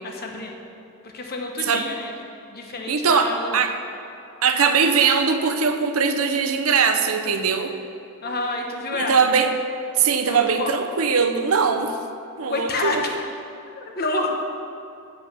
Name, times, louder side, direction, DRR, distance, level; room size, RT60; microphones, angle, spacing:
voice 1, 0.0-0.5 1.0-2.1 2.5-3.5 8.2-9.3 10.2-10.7 12.5-13.1 13.7-14.4, left 2 dB, 45° left, 2 dB, 1.1 m, -28 dB
voice 2, 2.9-3.8 4.4-7.7 8.9-9.5 10.0-12.0 12.4-13.1, right 5 dB, 70° right, 7 dB, 0.7 m, -21 dB
8.1 x 8.0 x 5.3 m, 2.6 s
head